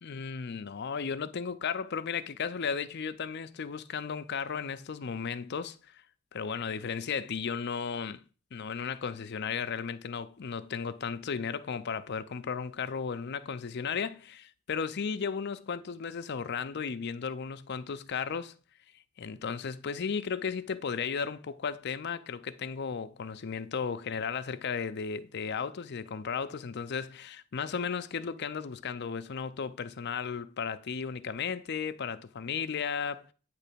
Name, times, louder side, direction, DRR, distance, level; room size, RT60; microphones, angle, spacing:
voice 1, 0.0-6.0 6.3-8.2 8.5-18.5 19.2-33.3, left 6 dB, 50° left, 0.5 m, -35 dB
9.1 x 3.3 x 6.7 m
head